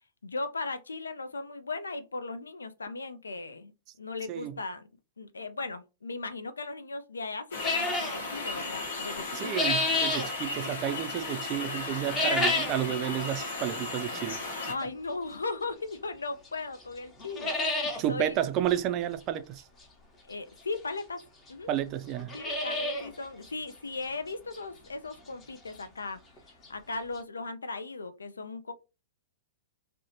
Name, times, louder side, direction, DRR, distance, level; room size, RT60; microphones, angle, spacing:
voice 1, 0.2-3.7 4.0-4.9 5.2-9.7 14.7-18.4 20.3-21.2 21.5-21.7 22.3-26.2 26.7-28.7, left 3 dB, 80° left, 0.4 m, -37 dB
sound 1, 7.5-14.7, left 3 dB, 60° left, 0.9 m, -36 dB
sound 2, 7.6-8.2 9.1-10.3 12.0-12.8 13.2-13.3 14.1-14.2 15.9-16.0 16.5-16.6 16.8-16.9 17.2-18.0 18.4-18.5 18.7-18.8 20.3-20.4 21.2-21.3 21.5-21.6 22.1-23.1 23.4-23.5 24.0-24.1 24.5-24.6 26.4-26.5 26.6-26.7 27.2-27.3, left 2 dB, 20° left, 0.8 m, -29 dB
voice 2, 9.3-14.4 18.0-19.6 21.7-22.4, right 11 dB, 35° right, 0.3 m, -31 dB
2.6 x 2.1 x 2.8 m
figure-of-eight pair, 105°, 0 cm